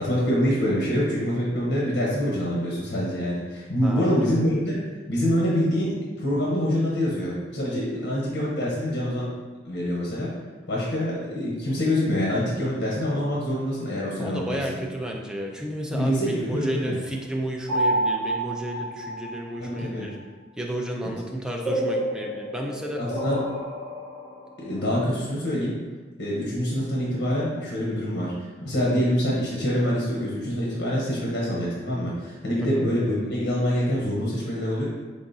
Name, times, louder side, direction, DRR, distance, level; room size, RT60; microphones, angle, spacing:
voice 1, 0.0-4.8 5.1-9.3 9.6-10.3 10.7-14.8 15.9-17.0 19.6-20.1 23.2-23.4 24.7-25.8 26.2-28.3 28.6-34.8, equal, 80° left, -5 dB, 0.8 m, -25 dB
voice 2, 3.8-4.4 8.0-8.6 14.2-20.2 20.6-23.2 24.6-24.9 28.7-28.8 32.4-32.9, right 1 dB, 5° right, -1 dB, 0.3 m, -33 dB
sound 1, 17.7-19.5 21.6-24.4, right 1 dB, 25° left, 1.3 m, -28 dB
4.0 x 3.5 x 2.6 m, 1.3 s
head